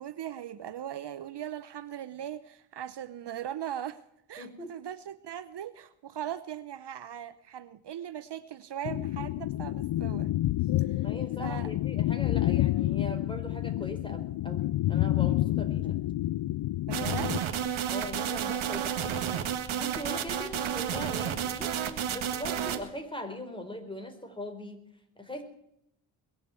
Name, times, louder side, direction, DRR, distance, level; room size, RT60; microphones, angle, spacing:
voice 1, 0.0-10.3 10.8-11.0 11.4-11.7 16.9-17.5, right 10 dB, 55° right, 0.9 m, -39 dB
voice 2, 4.4-4.7 11.0-16.0 17.8-24.8 25.2-25.4, left 1 dB, 10° left, 4.4 m, -41 dB
sound 1, 8.8-17.4, left 15 dB, 60° left, 0.5 m, -29 dB
sound 2, 16.9-22.8, right 9 dB, 75° right, 1.8 m, -31 dB
22.0 x 7.5 x 7.8 m
cardioid pair, 65°, 49 cm